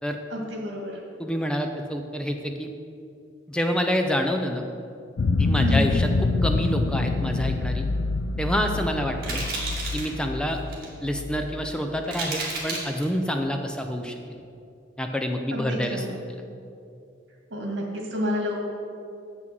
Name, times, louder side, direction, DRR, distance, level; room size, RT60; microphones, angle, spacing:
voice 1, 0.3-1.0 5.6-5.9 15.5-16.1 17.5-18.7, left 1 dB, 75° right, 0 dB, 1.9 m, -29 dB
voice 2, 1.2-2.7 3.5-4.6 5.4-7.8 8.4-9.4 9.9-10.6 11.0-14.4 15.0-16.1, equal, 5° left, 4 dB, 0.5 m, -27 dB
sound 1, 5.2-12.3, left 3 dB, 75° left, 0.4 m, -26 dB
sound 2, 8.3-8.5 9.2-10.1 10.5-10.9 11.5-11.6 12.0-13.0, right 3 dB, 55° right, 2.2 m, -32 dB
7.5 x 6.1 x 7.5 m, 2.5 s
head